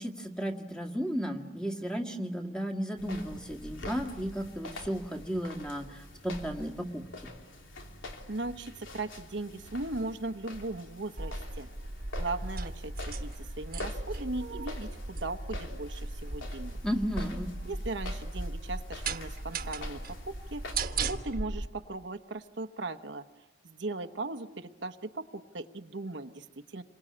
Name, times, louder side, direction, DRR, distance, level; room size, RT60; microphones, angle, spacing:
voice 1, 0.0-7.0 16.8-17.5, equal, 5° left, 2 dB, 1.9 m, -34 dB
sound 1, 3.0-20.7, left 1 dB, 90° left, 3.3 m, -46 dB
voice 2, 8.3-11.7 12.2-16.8 17.7-23.2 23.6-26.8, right 2 dB, 70° right, 8 dB, 1.0 m, -38 dB
sound 2, 11.2-21.7, right 3 dB, 50° right, 1.3 m, -37 dB
28.0 x 23.5 x 8.7 m, 1.1 s
head